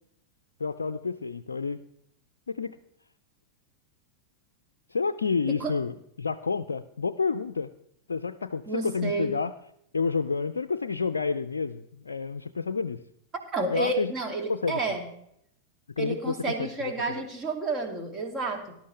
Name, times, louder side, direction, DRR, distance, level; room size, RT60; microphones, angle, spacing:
voice 1, 0.6-1.8 2.5-2.8 4.9-7.7 8.1-9.5 9.9-13.0 13.7-14.1 14.5-14.8 16.0-16.7, left 5 dB, 75° left, 8 dB, 0.5 m, -29 dB
voice 2, 8.7-9.3 13.5-15.1 16.0-18.8, right 3 dB, 25° right, 4 dB, 2.5 m, -30 dB
19.0 x 12.0 x 3.3 m, 0.74 s
figure-of-eight pair, 90°, 0 cm